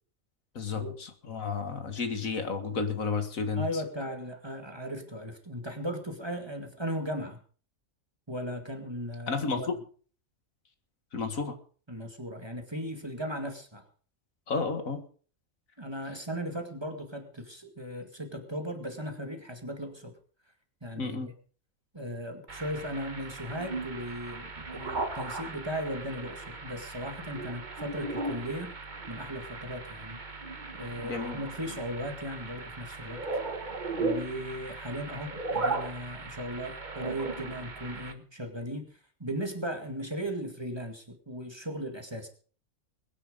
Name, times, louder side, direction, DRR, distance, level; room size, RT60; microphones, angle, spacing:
voice 1, 0.6-3.8 9.3-9.8 11.1-11.6 14.5-15.0 21.0-21.3 31.0-31.4, left 4 dB, 80° left, 8 dB, 2.2 m, -32 dB
voice 2, 3.5-7.4 8.3-9.7 11.9-13.9 15.8-20.1 20.8-21.3 21.9-28.7 29.1-30.2 30.7-33.3 34.0-42.3, equal, 20° right, 5 dB, 2.2 m, -37 dB
sound 1, 22.5-38.1, right 3 dB, 35° right, 1.6 m, -37 dB
21.5 x 10.0 x 5.3 m, 0.43 s
omnidirectional pair, 1.4 m